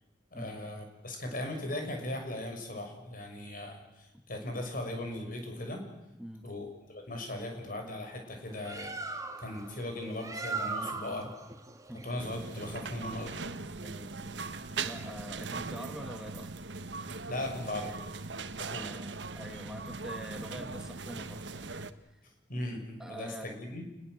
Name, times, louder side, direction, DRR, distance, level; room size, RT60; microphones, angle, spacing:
voice 1, 0.3-5.8 6.4-11.3 12.0-13.3 17.3-18.0 18.5-18.9 20.5-20.6 22.5-23.9, left 1 dB, 50° left, 3 dB, 6.3 m, -38 dB
voice 2, 6.2-6.5 11.9-12.0 13.8-14.4 14.8-16.5 18.8-21.7 22.1-22.2 23.0-23.4, equal, 5° right, 5 dB, 1.6 m, -45 dB
Bird, 8.4-13.6, right 4 dB, 20° right, 1.9 m, -40 dB
sound 1, 12.2-21.9, right 4 dB, 85° right, 1.4 m, -40 dB
28.5 x 21.0 x 7.9 m, 0.94 s
head